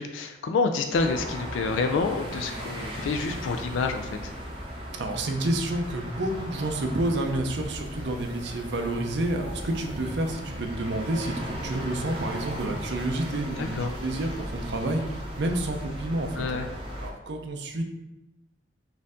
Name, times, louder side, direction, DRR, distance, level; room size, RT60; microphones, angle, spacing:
voice 1, 0.0-4.3 13.6-14.0 16.4-16.7, left 4 dB, 90° left, 6 dB, 0.4 m, -28 dB
sound 1, 0.9-17.1, equal, 30° right, 0.7 m, -37 dB
voice 2, 4.9-16.6 17.0-17.8, right 1 dB, 65° right, 4 dB, 0.5 m, -29 dB
4.2 x 2.6 x 3.6 m, 0.96 s
head